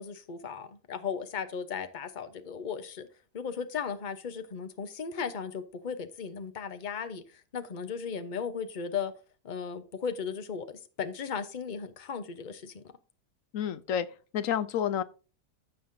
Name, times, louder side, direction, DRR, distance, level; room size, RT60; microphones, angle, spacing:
voice 1, 0.0-3.1 3.3-9.1 9.4-12.8, left 6 dB, 35° left, 1.0 m, -36 dB
voice 2, 13.5-14.1 14.3-15.0, left 9 dB, 65° left, 0.9 m, -29 dB
15.5 x 5.6 x 2.7 m
omnidirectional pair, 1.7 m